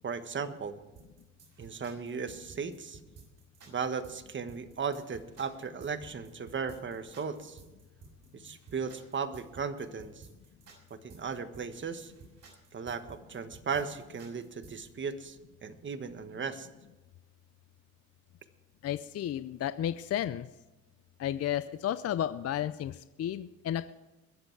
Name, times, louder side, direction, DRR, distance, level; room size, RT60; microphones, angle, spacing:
voice 1, 0.0-0.8 1.6-3.0 3.7-7.6 8.3-10.3 10.9-12.1 12.7-16.7, right 5 dB, 40° right, 9 dB, 1.4 m, -36 dB
sound 1, 1.0-14.9, right 5 dB, 55° right, 6.0 m, -54 dB
voice 2, 18.8-20.5 21.2-23.9, left 11 dB, 55° left, 14 dB, 0.5 m, -32 dB
22.0 x 8.0 x 4.7 m, 1.1 s
cardioid pair, 90°, 30 cm